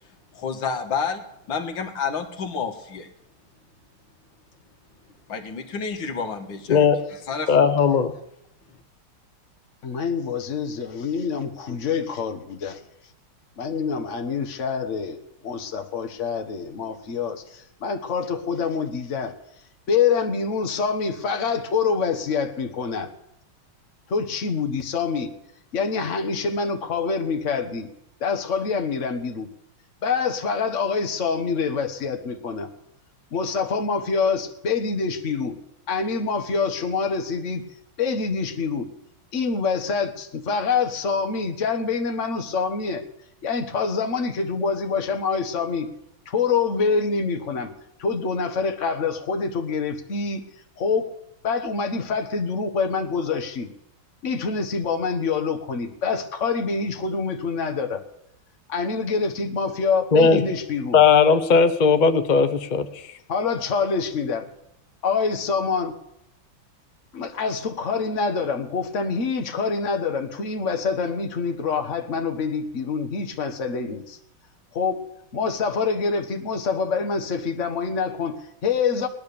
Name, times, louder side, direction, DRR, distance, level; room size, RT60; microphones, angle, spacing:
voice 1, 0.3-3.1 5.3-6.9 7.3-7.7, left 5 dB, 65° left, 5 dB, 2.2 m, -29 dB
voice 2, 6.7-7.1 7.5-8.1 60.1-60.4 60.9-63.2, left 5 dB, 85° left, 9 dB, 0.4 m, -18 dB
voice 3, 9.8-12.8 13.6-19.3 19.9-23.1 24.1-25.3 25.7-27.9 28.2-29.5 30.0-32.7 33.3-35.6 35.9-37.6 38.0-38.9 39.3-43.0 43.4-45.9 46.3-47.7 48.0-50.4 50.8-51.1 51.4-53.7 54.2-58.0 58.7-61.0 63.3-64.5 65.0-66.0 67.1-74.2 74.7-75.0 75.3-79.1, left 5 dB, 40° left, 6 dB, 1.4 m, -26 dB
18.0 x 10.5 x 6.9 m, 0.79 s
omnidirectional pair, 2.3 m